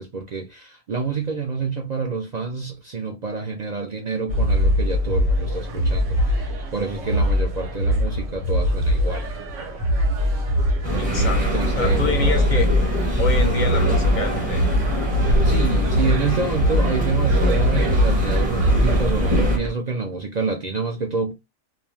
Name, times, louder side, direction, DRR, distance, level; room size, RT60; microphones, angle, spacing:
voice 1, 0.0-9.4 10.9-12.5 15.4-21.3, right 4 dB, 60° right, 0.4 m, -28 dB
sound 1, 4.3-19.7, equal, 85° right, 1.2 m, -22 dB
sound 2, 10.8-19.6, equal, 10° right, 0.7 m, -24 dB
voice 2, 11.0-11.4 11.8-12.7 13.2-15.0, left 4 dB, 55° left, 0.5 m, -27 dB
2.5 x 2.2 x 3.1 m
omnidirectional pair, 1.3 m